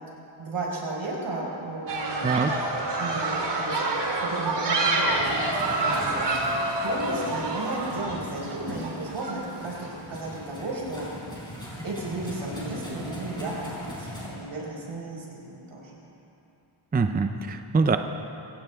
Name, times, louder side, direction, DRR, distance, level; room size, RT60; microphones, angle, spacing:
voice 1, 0.4-2.4 2.9-3.9 4.2-6.3 6.8-9.7 10.1-11.1 11.8-15.9, right 2 dB, 80° right, -3 dB, 4.8 m, -34 dB
sound 1, 1.9-9.9, right 2 dB, 60° right, 2.3 m, -28 dB
sound 2, 5.1-14.3, equal, 10° left, 4.1 m, -40 dB
voice 2, 16.9-18.0, right 4 dB, 20° right, 7 dB, 0.5 m, -23 dB
25.5 x 16.0 x 3.5 m, 2.8 s
wide cardioid pair, 160°, 49 cm